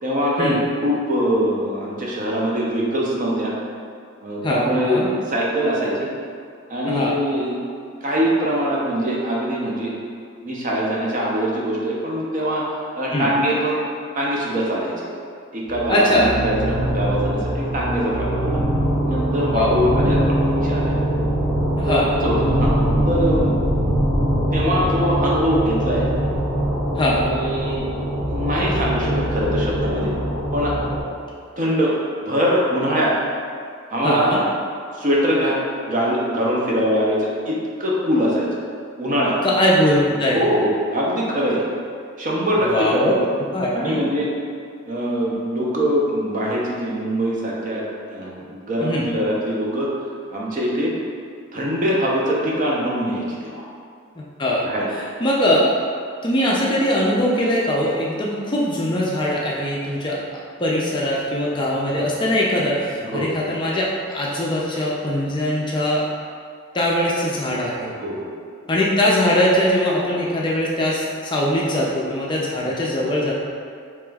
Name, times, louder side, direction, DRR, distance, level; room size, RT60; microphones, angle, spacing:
voice 1, 0.0-3.5 4.2-6.1 6.7-7.6 8.0-9.9 10.4-12.7 12.9-13.8 14.1-15.1 15.5-18.6 19.0-20.9 21.8-22.7 23.1-23.5 24.5-26.1 27.1-27.9 28.3-30.1 30.5-30.7 31.6-31.9 32.3-33.1 33.9-34.4 34.9-35.6 35.9-38.6 39.0-39.3 40.3-41.6 42.2-43.1 43.7-44.3 44.9-47.8 48.1-49.9 50.3-50.9 51.5-53.6 54.6-55.0 61.5-61.6 62.9-63.3 67.9-68.3 72.6-72.7, equal, 35° right, -4 dB, 0.6 m, -22 dB
voice 2, 4.4-5.1 6.9-7.1 13.1-13.3 15.9-16.3 19.5-19.8 21.8-22.1 27.0-27.2 34.0-34.4 39.4-40.4 42.6-43.2 43.5-44.0 48.8-49.1 54.2-54.6 55.2-55.7 56.2-60.2 60.6-66.0 66.7-67.9 68.7-73.3, left 1 dB, 20° left, -4 dB, 0.4 m, -21 dB
sound 1, 15.7-31.0, equal, 80° right, 0.7 m, -22 dB
4.8 x 3.0 x 2.3 m, 2.2 s
head